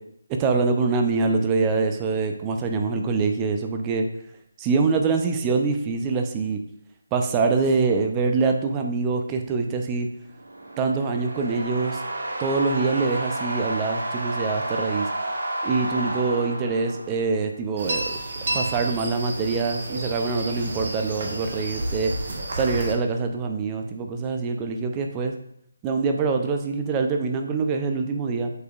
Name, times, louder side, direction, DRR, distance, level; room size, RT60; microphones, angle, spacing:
voice 1, 0.3-4.1 4.6-6.6 7.1-10.1 10.8-12.0 12.4-15.1 15.6-18.1 18.5-22.1 22.5-25.3 25.8-28.5, right 4 dB, 15° right, 4 dB, 0.6 m, -24 dB
sound 1, 10.3-17.4, right 1 dB, 85° right, 1.8 m, -31 dB
sound 2, 17.8-22.9, right 1 dB, 50° right, 1.4 m, -31 dB
7.8 x 5.2 x 2.5 m, 0.74 s
figure-of-eight pair, 160°, 0 cm